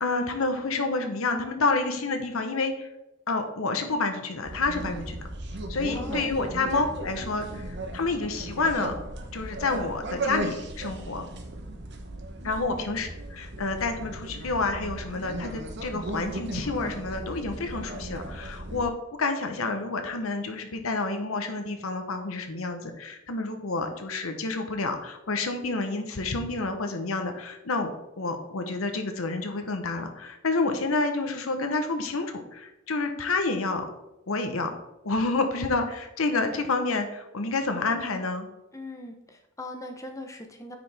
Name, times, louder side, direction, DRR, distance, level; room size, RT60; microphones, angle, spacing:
voice 1, 0.0-2.9 3.3-5.2 5.7-8.9 9.3-11.3 12.4-18.9 19.2-33.9 34.3-34.7 35.0-38.5, left 3 dB, 80° left, 6 dB, 1.0 m, -29 dB
sound 1, 4.4-18.9, right 1 dB, 55° right, 1.0 m, -36 dB
voice 2, 5.9-6.3 12.4-12.9 38.7-40.8, left 1 dB, 15° left, 4 dB, 0.8 m, -40 dB
9.4 x 5.0 x 3.4 m, 0.92 s
head